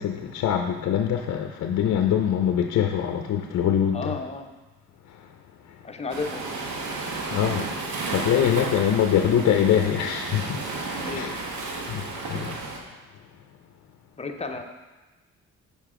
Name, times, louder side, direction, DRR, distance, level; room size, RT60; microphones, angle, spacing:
voice 1, 0.0-4.1 5.1-5.3 5.6-5.8 7.3-10.8 11.1-11.3 11.9-12.6, left 9 dB, 60° left, 4 dB, 0.5 m, -24 dB
voice 2, 3.9-4.5 5.8-6.5 11.0-11.5 14.2-14.6, left 3 dB, 20° left, 5 dB, 0.6 m, -33 dB
Waves surf, 6.1-12.8, right 3 dB, 70° right, 1.1 m, -32 dB
6.8 x 5.1 x 3.7 m, 1.2 s
cardioid pair, 90°, 30 cm